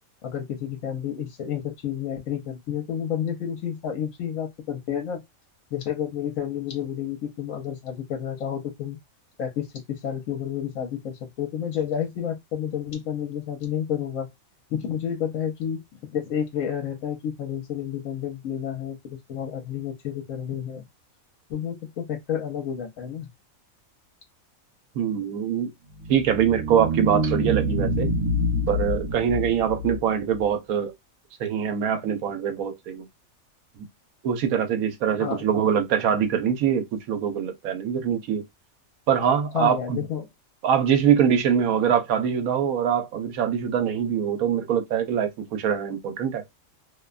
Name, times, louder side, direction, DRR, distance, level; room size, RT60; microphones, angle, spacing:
voice 1, 0.2-5.2 5.7-9.0 9.4-14.3 14.7-15.8 16.1-20.8 21.5-23.3 35.2-35.4 39.5-40.3, left 9 dB, 70° left, 1.0 m, -30 dB
voice 2, 24.9-25.7 26.1-28.1 28.7-30.9 31.4-33.1 33.8-33.9 34.2-38.4 39.1-40.0 40.6-46.4, right 8 dB, 90° right, 1.1 m, -23 dB
sound 1, 25.9-30.4, equal, 65° right, 1.1 m, -26 dB
2.6 x 2.2 x 2.3 m
omnidirectional pair, 1.5 m